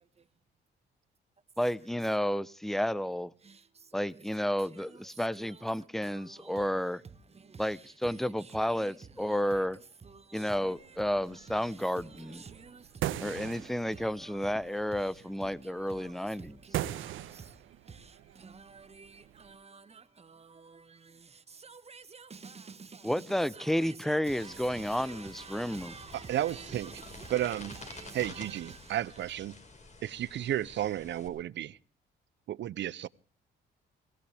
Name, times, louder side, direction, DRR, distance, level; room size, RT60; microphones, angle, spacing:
voice 1, 1.6-3.3 3.9-7.0 7.6-9.8 10.3-12.4 13.2-16.6 23.0-25.9, equal, ahead, 0.8 m, -31 dB
voice 2, 4.7-5.0 5.4-5.6 6.0-6.6 7.3-7.6 8.1-8.2 8.5-8.9 9.2-9.6 10.0-11.0 11.3-11.4 12.0-13.6 13.9-14.6 15.4-17.6 17.9-23.1 23.5-29.0, right 5 dB, 30° right, 1.5 m, -50 dB
sound 1, 10.7-19.6, right 13 dB, 85° right, 1.2 m, -42 dB
sound 2, 24.4-31.3, left 3 dB, 35° left, 5.2 m, -50 dB
voice 3, 26.1-27.0 27.3-27.8 28.1-29.6 30.0-31.8 32.5-33.1, right 12 dB, 65° right, 0.7 m, -33 dB
22.5 x 17.5 x 3.5 m
cardioid pair, 90°, 20 cm